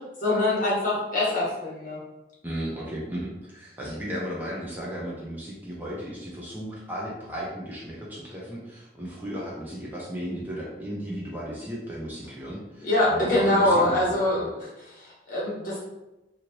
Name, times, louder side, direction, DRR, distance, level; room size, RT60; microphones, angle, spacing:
voice 1, 0.2-2.0 12.8-15.8, left 1 dB, 50° left, -7 dB, 1.2 m, -24 dB
voice 2, 2.4-14.5, equal, 10° right, -6 dB, 0.5 m, -35 dB
3.0 x 2.7 x 2.7 m, 1.0 s
head